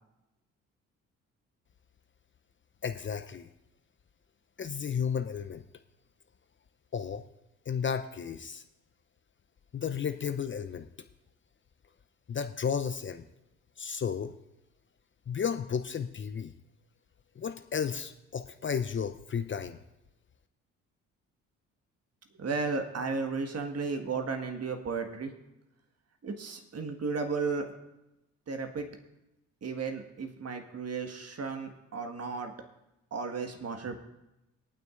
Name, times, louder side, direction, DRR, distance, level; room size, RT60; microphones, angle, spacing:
voice 1, 2.8-3.5 4.6-5.6 6.9-7.2 7.7-8.6 9.7-10.9 12.3-13.2 13.8-14.3 15.3-16.5 17.4-19.8, left 7 dB, 30° left, 8 dB, 0.7 m, -33 dB
voice 2, 22.4-25.3 26.2-27.7 28.5-28.9 29.6-32.5 33.1-34.0, right 4 dB, 40° right, 5 dB, 1.7 m, -34 dB
22.5 x 9.2 x 2.5 m, 0.92 s
figure-of-eight pair, 45°, 39 cm